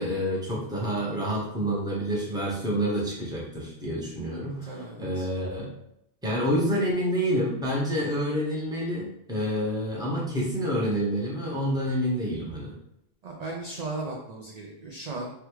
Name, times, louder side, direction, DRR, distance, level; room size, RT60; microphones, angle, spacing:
voice 1, 0.0-5.7 6.2-12.7, equal, 5° right, -5 dB, 0.7 m, -28 dB
voice 2, 4.6-5.3 13.2-15.3, right 2 dB, 55° right, -1 dB, 0.4 m, -36 dB
3.4 x 2.3 x 3.0 m, 0.81 s
omnidirectional pair, 1.1 m